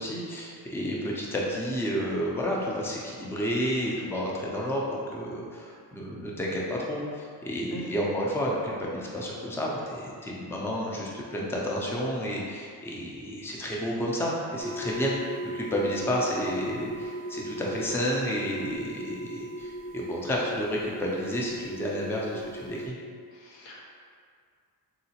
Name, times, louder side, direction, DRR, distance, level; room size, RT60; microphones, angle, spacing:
voice 1, 0.0-15.2 15.4-23.0, equal, 5° left, -4 dB, 0.4 m, -31 dB
sound 1, 14.6-22.9, equal, 20° right, 0.8 m, -37 dB
voice 2, 23.3-23.9, left 2 dB, 90° left, -3 dB, 0.7 m, -43 dB
3.8 x 2.1 x 2.8 m, 2.1 s
cardioid pair, 85°, 43 cm